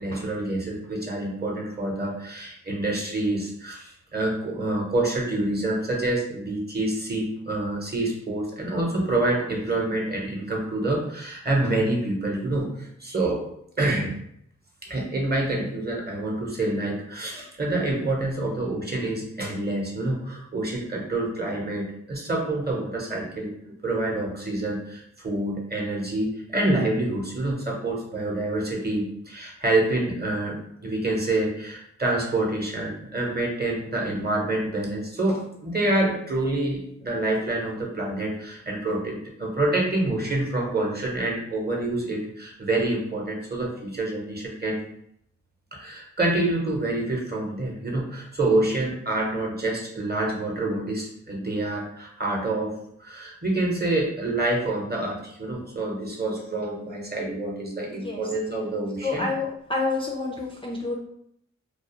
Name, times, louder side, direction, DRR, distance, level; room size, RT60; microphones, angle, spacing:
voice 1, 0.0-13.4 13.8-14.1 14.8-23.5 23.8-44.8 45.7-59.3, right 2 dB, 30° right, -1 dB, 0.8 m, -27 dB
voice 2, 59.0-60.9, left 3 dB, 15° left, -2 dB, 0.4 m, -28 dB
2.3 x 2.0 x 2.9 m, 0.73 s
cardioid pair, 45°, 32 cm